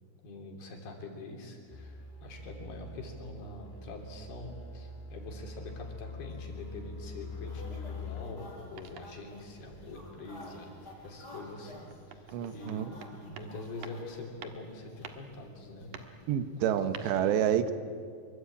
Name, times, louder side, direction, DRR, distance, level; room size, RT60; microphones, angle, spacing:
voice 1, 0.2-15.9 16.7-17.6, left 2 dB, 65° left, 2 dB, 5.0 m, -44 dB
sound 1, 1.7-8.2, left 3 dB, 85° left, 5.3 m, -44 dB
sound 2, 6.3-16.7, left 1 dB, 20° left, 5.4 m, -52 dB
sound 3, 8.7-9.3 11.5-13.6 13.8-14.1 14.4-14.7 15.0-15.3 15.9-16.2 16.9-17.1, right 7 dB, 60° right, 2.4 m, -48 dB
voice 2, 12.3-12.9 16.3-17.8, right 10 dB, 80° right, 10 dB, 3.3 m, -28 dB
26.5 x 24.0 x 8.6 m, 2.3 s
omnidirectional pair, 5.0 m